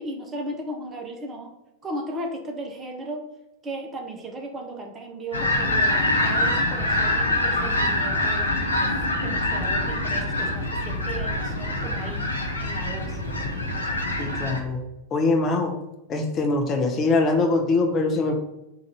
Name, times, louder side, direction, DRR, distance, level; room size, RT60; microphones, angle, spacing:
voice 1, 0.0-1.5 1.8-3.2 3.6-12.3 12.6-13.2, right 1 dB, 20° right, 2 dB, 0.7 m, -36 dB
sound 1, 5.3-14.6, left 1 dB, 80° left, 0.7 m, -25 dB
voice 2, 14.2-14.8 15.1-15.7 16.1-18.4, left 3 dB, 30° left, 4 dB, 0.6 m, -23 dB
3.9 x 2.5 x 4.6 m, 0.92 s
figure-of-eight pair, 90°, 0 cm